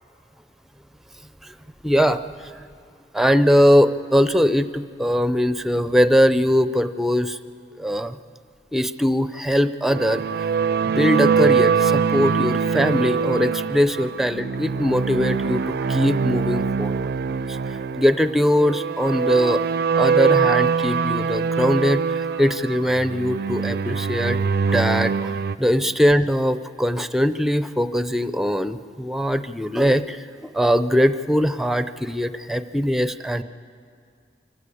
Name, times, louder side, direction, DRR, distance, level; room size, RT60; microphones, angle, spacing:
voice 1, 1.8-2.5 3.1-7.4 7.8-8.2 8.7-10.2 10.8-17.6 18.0-19.6 20.0-24.4 24.7-25.3 25.6-33.4, equal, ahead, 11 dB, 0.5 m, -21 dB
sound 1, 9.9-25.6, right 6 dB, 60° right, 0.4 m, -23 dB
25.0 x 15.0 x 8.5 m, 2.2 s
head